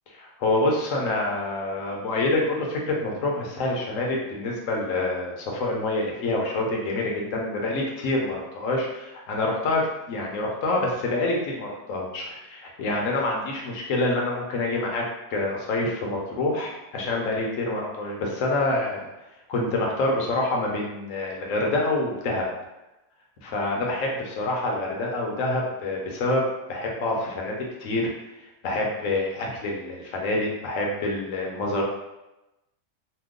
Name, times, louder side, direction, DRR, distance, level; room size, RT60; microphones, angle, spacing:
voice 1, 0.1-9.8 10.1-15.0 15.3-19.1 19.5-22.4 23.4-28.0 28.6-31.8, left 2 dB, 75° left, -1 dB, 1.1 m, -27 dB
2.9 x 2.2 x 3.6 m, 0.97 s
omnidirectional pair, 1.4 m